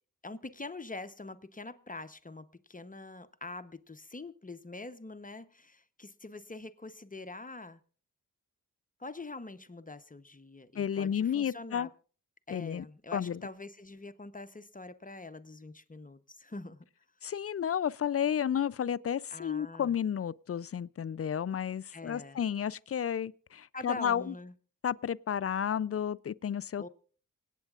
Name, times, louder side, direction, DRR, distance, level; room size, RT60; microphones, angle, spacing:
voice 1, 0.2-7.8 9.0-11.9 12.5-16.9 19.3-19.9 21.9-22.4 23.7-24.5 26.8-26.9, left 2 dB, 25° left, 0.9 m, -44 dB
voice 2, 10.8-11.9 12.5-12.8 13.1-13.4 17.2-24.3 24.8-26.9, left 8 dB, 40° left, 0.4 m, -32 dB
27.0 x 9.0 x 2.4 m
cardioid pair, 50°, 35 cm